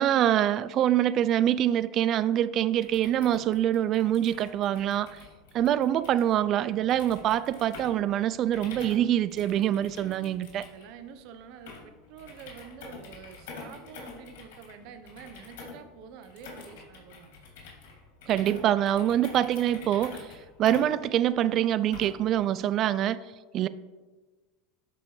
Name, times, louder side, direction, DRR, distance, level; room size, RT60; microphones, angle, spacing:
voice 1, 0.0-5.2 5.5-10.7 18.3-20.3 20.6-23.2 23.5-23.7, right 11 dB, 40° right, 16 dB, 0.3 m, -25 dB
sound 1, 2.7-22.3, left 4 dB, 75° left, 2.7 m, -47 dB
voice 2, 10.6-17.3, right 8 dB, 55° right, 8 dB, 0.8 m, -48 dB
12.5 x 5.4 x 3.2 m, 1.3 s
supercardioid pair, 120°, 0 cm